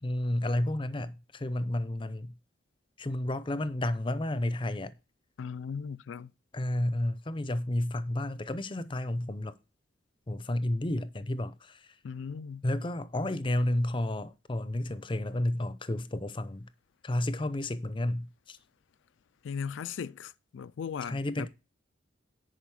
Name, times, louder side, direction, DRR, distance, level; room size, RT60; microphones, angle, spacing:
voice 1, 0.0-2.3 3.0-4.9 6.5-9.5 10.3-11.9 12.6-16.7 17.0-18.6 21.0-21.5, left 1 dB, 25° left, 0.6 m, -31 dB
voice 2, 5.4-6.3 12.0-12.6 19.4-21.5, left 6 dB, 75° left, 0.4 m, -38 dB
10.5 x 4.9 x 4.7 m
head